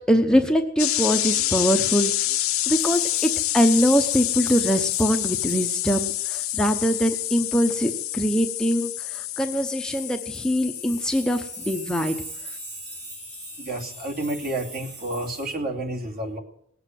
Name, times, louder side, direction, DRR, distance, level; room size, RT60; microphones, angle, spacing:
voice 1, 0.1-2.1 2.7-12.2, equal, 5° left, 4 dB, 0.9 m, -23 dB
sound 1, 0.8-14.4, left 15 dB, 80° left, 1.0 m, -28 dB
sound 2, 2.7-8.9 9.5-9.6 9.9-15.5, right 3 dB, 80° right, 7.0 m, -43 dB
voice 2, 13.6-16.4, right 1 dB, 45° right, 1 dB, 2.9 m, -30 dB
19.5 x 8.1 x 9.2 m, 0.71 s
head